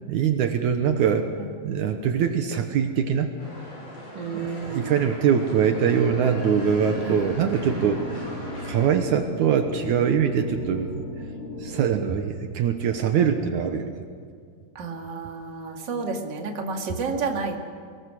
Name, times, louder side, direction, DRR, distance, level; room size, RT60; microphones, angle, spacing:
voice 1, 0.1-1.3 1.6-3.3 4.3-8.2 8.6-11.0 11.6-13.9, right 7 dB, 75° right, 6 dB, 2.4 m, -23 dB
sound 1, 3.4-8.9, equal, 75° left, 8.2 m, -40 dB
voice 2, 4.1-5.0 7.0-7.3 14.8-17.5, right 4 dB, 40° right, 2 dB, 2.4 m, -31 dB
sound 2, 6.0-12.0, equal, 60° left, 5.2 m, -36 dB
23.5 x 20.0 x 6.4 m, 2.2 s
omnidirectional pair, 3.6 m